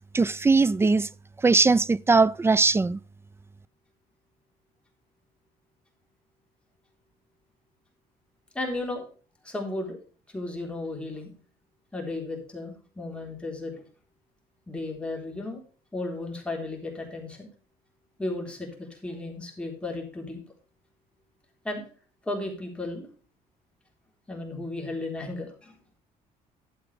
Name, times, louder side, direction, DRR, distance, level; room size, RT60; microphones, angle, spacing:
voice 1, 0.1-1.1 1.4-3.0, right 3 dB, 15° right, 0.3 m, -20 dB
voice 2, 8.5-9.0 9.4-10.0 10.3-11.3 11.9-13.8 14.7-15.6 15.9-17.5 18.2-20.4 21.6-21.8 22.3-23.1 24.3-25.7, left 2 dB, 5° left, 3.7 m, -34 dB
12.0 x 8.0 x 3.3 m
cardioid pair, 110°, 17 cm